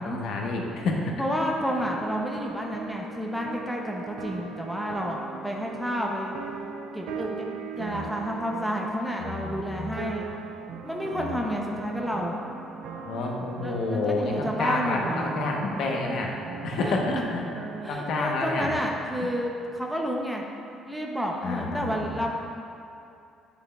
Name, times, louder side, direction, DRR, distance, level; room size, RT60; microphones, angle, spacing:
voice 1, 0.0-1.2 7.9-8.0 9.2-10.2 11.1-11.4 13.1-16.4 16.6-17.5 17.9-18.7 21.4-22.1, left 3 dB, 60° left, 0 dB, 0.9 m, -29 dB
voice 2, 1.2-6.3 6.9-7.5 7.8-10.3 10.8-12.3 13.6-15.4 16.8-17.0 17.8-20.4 20.9-22.3, equal, 5° right, -1 dB, 0.5 m, -30 dB
sound 1, 1.6-17.9, right 6 dB, 85° right, 0.5 m, -39 dB
9.8 x 6.8 x 2.3 m, 2.6 s
cardioid pair, 160°, 0 cm